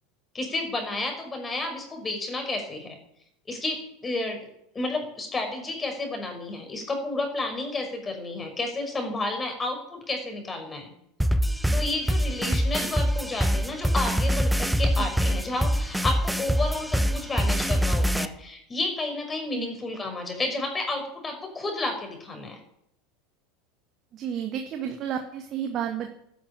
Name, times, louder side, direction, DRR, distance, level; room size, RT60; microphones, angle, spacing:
voice 1, 0.3-3.0 3.5-4.4 4.7-10.9 11.7-22.6, left 2 dB, 20° left, 4 dB, 5.7 m, -31 dB
sound 1, 11.2-18.2, equal, 5° right, 1.1 m, -24 dB
voice 2, 24.1-26.1, right 9 dB, 45° right, 5 dB, 2.0 m, -31 dB
13.0 x 11.0 x 9.0 m, 0.74 s
hypercardioid pair, 80°, 0 cm